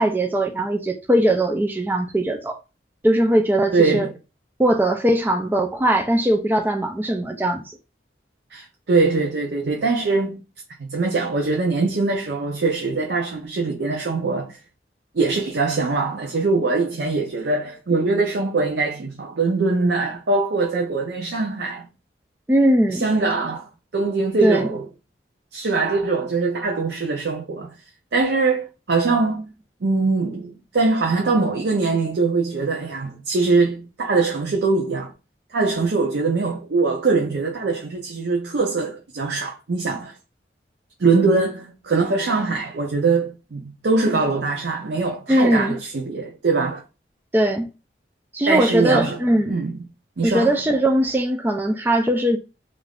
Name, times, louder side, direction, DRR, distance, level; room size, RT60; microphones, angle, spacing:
voice 1, 0.0-2.6 3.0-4.1 4.6-7.8 22.5-23.1 24.4-24.7 45.3-45.8 47.3-47.7 48.3-49.6 50.2-52.4, right 1 dB, 10° right, 0.3 m, -20 dB
voice 2, 3.7-4.1 8.5-10.4 10.8-14.6 15.1-21.9 22.9-24.9 25.5-27.7 28.1-29.5 29.8-35.1 35.5-40.2 41.0-46.8 48.5-49.8 50.2-50.6, right 3 dB, 70° right, 0.5 m, -22 dB
3.3 x 2.5 x 2.3 m
head